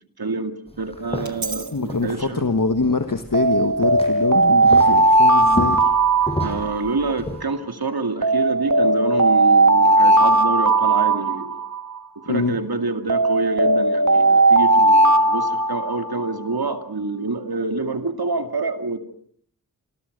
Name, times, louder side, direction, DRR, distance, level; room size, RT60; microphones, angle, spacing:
voice 1, 0.2-2.4 6.4-11.6 12.2-19.0, right 3 dB, 90° right, 7 dB, 2.5 m, -27 dB
sound 1, 0.7-7.4, left 1 dB, 15° left, 6.5 m, -33 dB
Alarm, 1.2-1.6 3.3-7.1 8.2-12.0 13.1-16.3, right 2 dB, 55° right, 1.6 m, -17 dB
voice 2, 1.7-5.9 12.3-12.6, left 3 dB, 65° left, 8 dB, 1.6 m, -24 dB
28.5 x 26.5 x 6.7 m, 0.63 s
wide cardioid pair, 45°, 36 cm